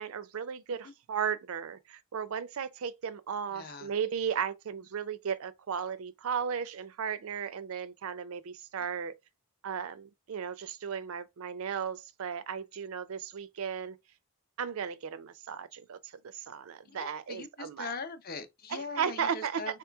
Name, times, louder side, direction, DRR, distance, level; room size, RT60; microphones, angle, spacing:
voice 1, 0.0-9.1 9.6-14.0 14.6-16.0 16.2-17.9 18.7-19.6, right 7 dB, 70° right, 0.4 m, -35 dB
voice 2, 3.5-3.9 16.9-19.8, left 4 dB, 40° left, 0.6 m, -41 dB
3.8 x 2.9 x 3.4 m
head